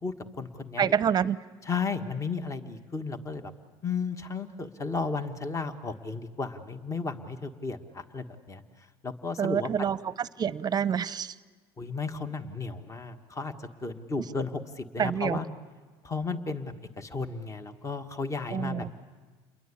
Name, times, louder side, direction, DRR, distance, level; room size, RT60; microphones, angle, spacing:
voice 1, 0.0-0.9 1.7-3.5 3.8-8.6 9.0-9.7 11.8-15.5 16.0-18.9, left 4 dB, 25° left, 8 dB, 1.5 m, -34 dB
voice 2, 0.8-1.4 9.4-11.4 15.0-15.4 18.5-18.9, right 8 dB, 30° right, 17 dB, 0.8 m, -27 dB
29.0 x 22.0 x 8.5 m, 1.4 s
hypercardioid pair, 85°, 13 cm